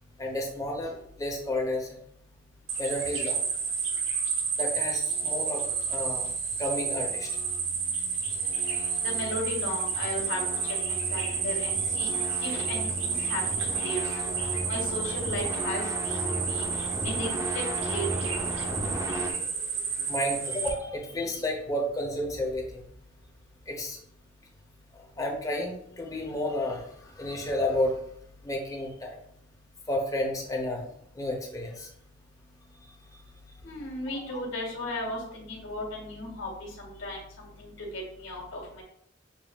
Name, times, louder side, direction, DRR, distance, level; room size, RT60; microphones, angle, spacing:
voice 1, 0.2-2.0 2.8-3.4 4.6-6.3 6.6-7.3 18.6-19.5 19.9-22.9 23.7-24.0 25.2-28.0 28.4-29.2 29.9-30.9 31.1-31.9 33.1-33.2 34.3-34.4, left 1 dB, 20° left, -1 dB, 0.9 m, -32 dB
sound 1, 2.7-20.7, right 5 dB, 80° right, 0.9 m, -31 dB
sound 2, 4.8-19.3, right 1 dB, 15° right, 0.5 m, -37 dB
voice 2, 9.0-14.4 14.7-18.3 33.6-38.8, left 1 dB, 90° left, -1 dB, 1.6 m, -36 dB
7.2 x 2.8 x 2.4 m, 0.69 s
head